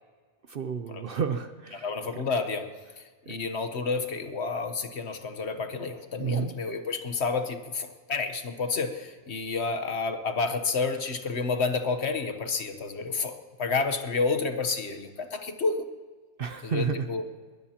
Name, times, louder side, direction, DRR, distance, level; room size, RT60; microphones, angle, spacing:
voice 1, 0.5-1.9 3.3-3.4 6.2-6.5 16.4-17.1, right 6 dB, 50° right, 9 dB, 0.8 m, -30 dB
voice 2, 1.7-2.7 3.0-15.8 16.6-17.3, left 4 dB, 55° left, 8 dB, 1.3 m, -30 dB
21.5 x 20.0 x 2.9 m, 1.5 s
omnidirectional pair, 1.3 m